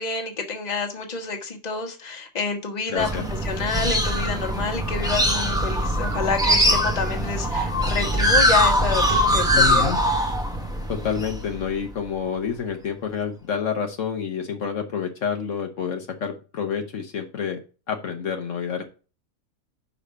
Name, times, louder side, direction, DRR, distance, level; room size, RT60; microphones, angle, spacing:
voice 1, 0.0-9.9, left 4 dB, 30° left, 3 dB, 1.3 m, -28 dB
voice 2, 2.9-3.2 9.5-10.0 10.9-17.6 17.9-18.8, left 7 dB, 65° left, 4 dB, 1.2 m, -28 dB
sound 1, 3.0-12.1, equal, 5° right, 0.8 m, -22 dB
5.7 x 5.0 x 6.4 m, 0.35 s
omnidirectional pair, 1.4 m